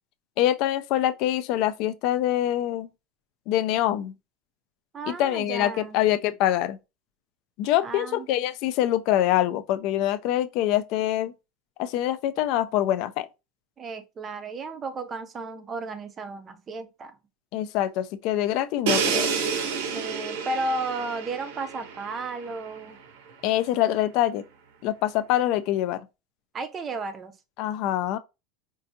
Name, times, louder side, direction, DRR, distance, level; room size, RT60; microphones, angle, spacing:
voice 1, 0.4-2.9 3.5-4.1 5.1-6.8 7.6-11.3 11.8-13.3 17.5-19.3 23.4-24.4 24.8-26.1 27.6-28.2, left 13 dB, 50° left, 0.3 m, -25 dB
voice 2, 4.9-6.0 7.8-8.3 13.8-17.2 19.8-23.0 26.5-27.3, right 3 dB, 20° right, 0.5 m, -33 dB
Crash cymbal, 18.9-22.7, right 6 dB, 75° right, 0.7 m, -29 dB
4.5 x 2.5 x 2.6 m
supercardioid pair, 155°, 0 cm